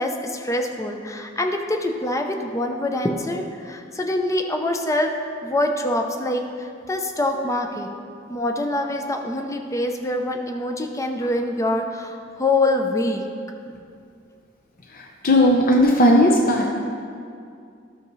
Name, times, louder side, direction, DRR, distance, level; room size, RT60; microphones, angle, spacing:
voice 1, 0.0-5.1 5.4-7.9 8.3-13.3, left 1 dB, 15° left, 4 dB, 0.6 m, -25 dB
voice 2, 15.2-16.7, left 1 dB, 45° left, 0 dB, 0.8 m, -16 dB
12.5 x 6.6 x 3.1 m, 2.3 s
head